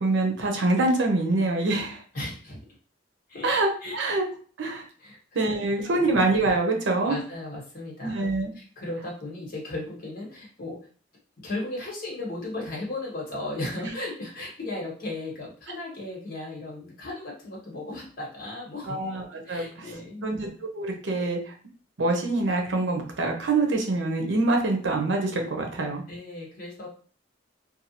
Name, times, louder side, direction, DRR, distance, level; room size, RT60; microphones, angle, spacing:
voice 1, 0.0-2.0 3.4-4.2 4.6-4.9 5.3-7.2 8.0-8.5 18.9-19.6 20.2-20.5 20.7-21.5 22.0-26.0, right 2 dB, 85° right, 2 dB, 0.7 m, -25 dB
voice 2, 2.1-2.6 3.3-3.5 3.8-4.0 5.0-5.2 7.1-10.8 11.4-19.1 19.4-20.3 26.0-26.9, left 2 dB, 50° left, -3 dB, 1.2 m, -36 dB
2.8 x 2.3 x 2.8 m, 0.42 s
head